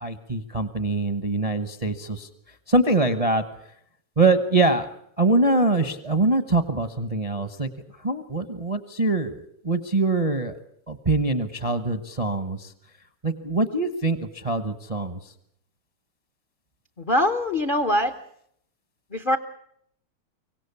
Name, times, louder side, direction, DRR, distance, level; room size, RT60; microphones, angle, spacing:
voice 1, 0.0-2.3 2.7-3.4 4.2-4.9 5.2-7.7 8.0-9.4 9.6-10.5 10.9-12.7 13.2-14.2 14.4-15.2, right 2 dB, 35° right, 11 dB, 0.6 m, -23 dB
voice 2, 17.0-18.1 19.1-19.4, left 1 dB, 55° left, 10 dB, 0.5 m, -22 dB
24.5 x 17.5 x 8.3 m, 0.71 s
omnidirectional pair, 2.4 m